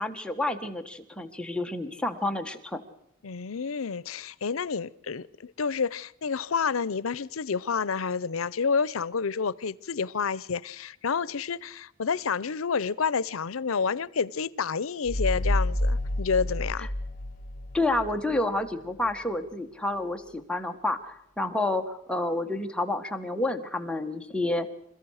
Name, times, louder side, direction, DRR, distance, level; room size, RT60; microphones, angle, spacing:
voice 1, 0.0-2.8 17.7-24.7, left 2 dB, 5° left, 1.4 m, -29 dB
voice 2, 3.2-16.9, left 5 dB, 85° left, 0.7 m, -29 dB
sound 1, 15.1-18.4, left 1 dB, 40° left, 1.5 m, -29 dB
27.5 x 14.5 x 6.4 m
head